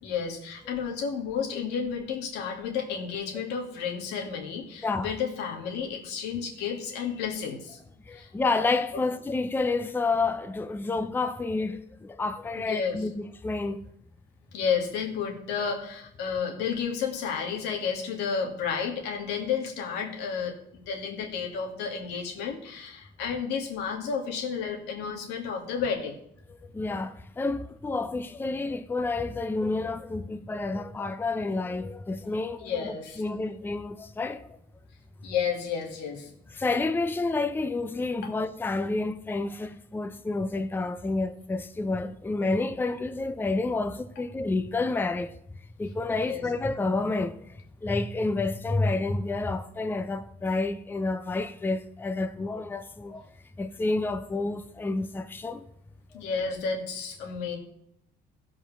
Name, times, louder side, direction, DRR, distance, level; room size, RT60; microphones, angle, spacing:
voice 1, 0.0-7.8 8.1-8.3 12.6-13.0 14.5-26.2 32.6-33.2 35.2-36.3 38.2-38.3 46.3-46.5 56.1-57.6, left 6 dB, 90° left, 2.1 m, -31 dB
voice 2, 4.8-5.1 8.1-13.8 26.7-34.5 36.5-45.3 45.8-47.3 47.8-53.2 53.6-55.6, left 3 dB, 10° left, 0.5 m, -29 dB
15.0 x 5.1 x 6.0 m
cardioid pair, 110°, 17 cm